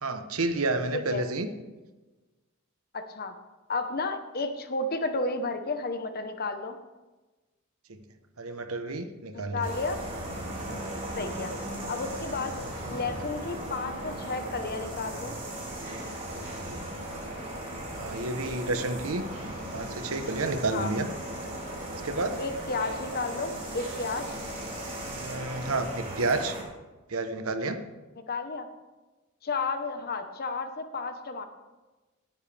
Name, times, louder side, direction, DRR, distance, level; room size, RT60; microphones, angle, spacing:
voice 1, 0.0-1.5 7.9-8.0 8.4-9.7 10.7-10.8 18.0-19.3 19.7-21.1 22.0-22.4 25.0-26.6 27.1-27.8, right 2 dB, 75° right, 8 dB, 1.1 m, -30 dB
voice 2, 0.9-1.2 2.9-3.3 3.7-6.8 9.3-10.0 11.1-11.5 11.9-12.5 12.9-15.4 20.7-20.9 22.4-24.4 28.3-28.7 29.4-31.4, left 3 dB, 45° left, 8 dB, 1.1 m, -32 dB
sound 1, 9.6-26.6, right 1 dB, 40° right, 4.5 m, -37 dB
18.5 x 10.0 x 3.5 m, 1.2 s
head